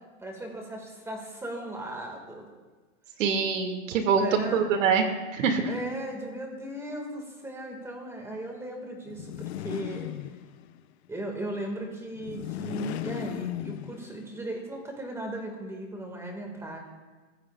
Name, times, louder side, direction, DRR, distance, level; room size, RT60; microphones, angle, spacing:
voice 1, 0.2-2.5 4.1-4.7 5.6-10.1 11.1-16.8, right 1 dB, 5° right, 2 dB, 2.0 m, -37 dB
voice 2, 3.2-4.2 4.5-5.0 5.3-5.6, right 6 dB, 75° right, 4 dB, 2.4 m, -24 dB
sound 1, 9.1-10.8 12.2-14.3, left 13 dB, 55° left, 0.8 m, -36 dB
28.5 x 15.0 x 2.5 m, 1.3 s
supercardioid pair, 150°, 39 cm